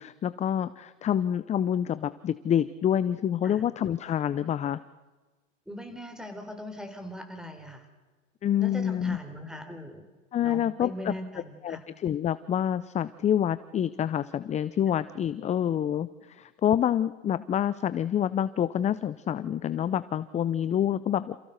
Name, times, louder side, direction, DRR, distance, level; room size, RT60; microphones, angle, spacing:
voice 1, 0.0-4.8 8.4-9.2 10.3-11.1 11.6-21.3, left 10 dB, 20° left, 15 dB, 0.5 m, -27 dB
voice 2, 5.7-7.9 8.6-10.0 10.4-11.8, left 1 dB, ahead, 6 dB, 3.7 m, -40 dB
28.0 x 15.5 x 6.6 m, 1.3 s
hypercardioid pair, 100°, 39 cm